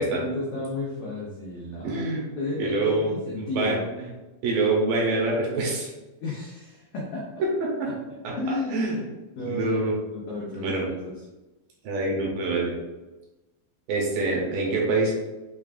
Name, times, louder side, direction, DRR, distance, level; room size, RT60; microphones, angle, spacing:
voice 1, 0.0-2.0 2.4-3.9 6.2-7.3 8.4-9.0 9.3-9.8 10.1-11.2, left 2 dB, 90° left, -4 dB, 1.6 m, -32 dB
voice 2, 1.8-2.3 2.6-3.8 4.4-5.9 7.4-7.9 8.2-8.3 8.7-9.0 9.4-10.0 10.6-10.9 11.8-12.7 13.9-15.1, right 2 dB, 75° right, -2 dB, 2.2 m, -25 dB
6.8 x 2.3 x 2.4 m, 1.1 s
omnidirectional pair, 4.3 m